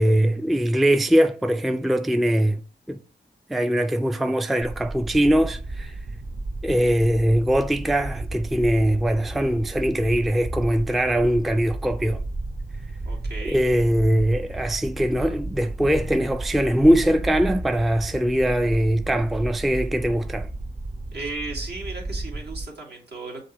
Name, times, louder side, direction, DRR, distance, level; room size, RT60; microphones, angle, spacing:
voice 1, 0.0-2.6 2.9-3.0 3.5-5.9 6.6-12.2 13.5-20.5, equal, ahead, 0.3 m, -21 dB
sound 1, 4.6-22.6, right 2 dB, 40° right, 0.7 m, -33 dB
voice 2, 13.0-13.6 21.1-23.5, right 3 dB, 65° right, 1.6 m, -35 dB
5.8 x 2.6 x 2.9 m
cardioid pair, 50°, 18 cm